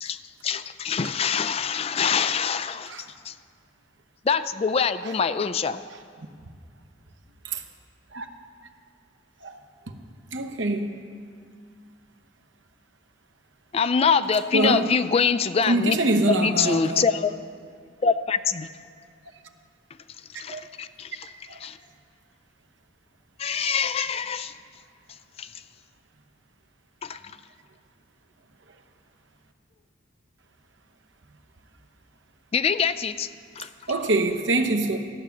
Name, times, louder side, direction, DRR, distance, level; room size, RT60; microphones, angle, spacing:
voice 1, 0.0-2.9 3.3-3.4 4.3-5.8 13.7-16.0 16.3-17.3 18.0-18.7 20.4-21.3 21.6-21.8 23.4-24.5 25.4-25.5 27.0-27.2 32.5-33.3 33.6-33.7, left 6 dB, 30° left, 0.3 m, -24 dB
voice 2, 10.3-11.0 14.5-14.9 15.7-17.1 20.5-20.6 21.5-21.6 33.9-35.0, right 2 dB, 75° right, 1.0 m, -24 dB
14.0 x 9.0 x 7.1 m
head